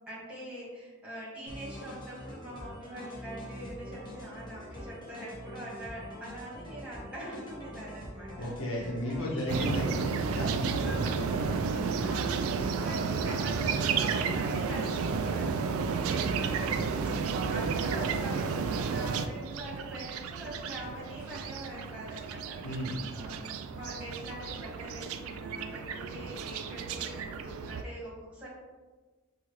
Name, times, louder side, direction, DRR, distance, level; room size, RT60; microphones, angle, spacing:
voice 1, 0.1-9.6 10.8-11.3 12.0-16.9 17.5-28.5, right 1 dB, 5° right, -8 dB, 1.5 m, -43 dB
sound 1, 1.5-18.9, left 1 dB, 20° left, 1.1 m, -45 dB
voice 2, 4.5-4.9 8.4-11.6 17.3-17.5 22.6-23.0, left 1 dB, 75° left, -3 dB, 1.1 m, -35 dB
sound 2, 9.5-27.8, right 5 dB, 80° right, 0.3 m, -32 dB
6.7 x 2.4 x 3.1 m, 1.3 s
head